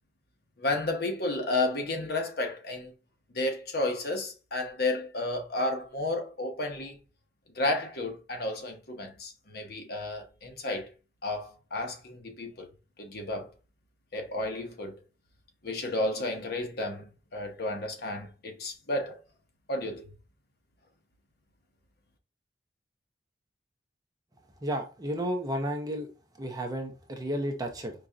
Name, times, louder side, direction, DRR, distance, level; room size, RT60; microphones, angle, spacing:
voice 1, 0.6-2.9 3.3-7.0 7.5-10.9 11.2-12.7 13.0-13.5 14.1-14.9 15.6-19.2 19.7-20.1, left 2 dB, 60° left, 0.9 m, -32 dB
voice 2, 24.6-26.1 26.4-27.9, equal, 20° right, 0.6 m, -32 dB
4.9 x 2.7 x 2.4 m
head